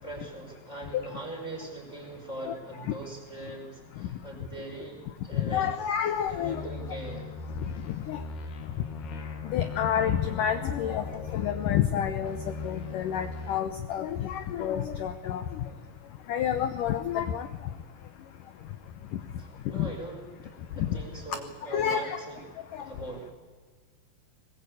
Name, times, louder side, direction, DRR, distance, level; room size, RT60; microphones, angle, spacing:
voice 1, 0.0-5.7 6.2-7.3 19.4-22.4 22.8-23.3, right 2 dB, 15° left, 1 dB, 4.9 m, -41 dB
voice 2, 5.4-6.6 8.1-8.2 9.5-11.0 11.3-12.4 12.6-15.4 16.3-17.5 19.7-19.9 20.8-20.9 21.7-22.2 22.7-22.9, left 9 dB, 90° left, 10 dB, 1.8 m, -29 dB
sound 1, 6.4-11.9 12.2-13.6, left 4 dB, 65° left, 4.0 m, -39 dB
22.0 x 20.5 x 8.5 m, 1.5 s
omnidirectional pair, 5.1 m